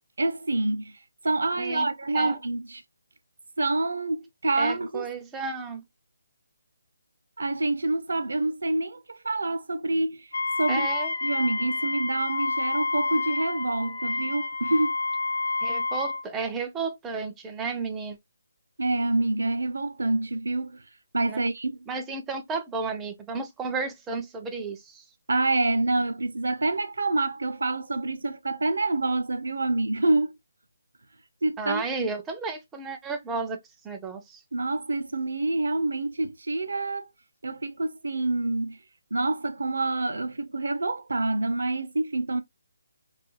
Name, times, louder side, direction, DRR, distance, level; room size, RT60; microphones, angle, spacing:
voice 1, 0.2-1.0 1.2-2.8 3.6-5.1 7.4-10.3 10.6-10.9 11.2-14.9 18.8-20.8 21.1-21.7 25.3-30.3 31.4-31.8 34.5-37.1 37.4-38.8 39.1-42.4, right 2 dB, 75° right, 0.5 m, -27 dB
voice 2, 1.6-1.9 2.1-2.4 4.5-5.8 10.7-11.1 15.6-18.2 21.3-21.4 21.9-25.0 31.6-34.4, right 4 dB, 10° right, 0.4 m, -33 dB
Wind instrument woodwind instrument, 10.3-16.2, left 3 dB, 65° left, 0.5 m, -29 dB
2.3 x 2.2 x 2.9 m
figure-of-eight pair, 155°, 0 cm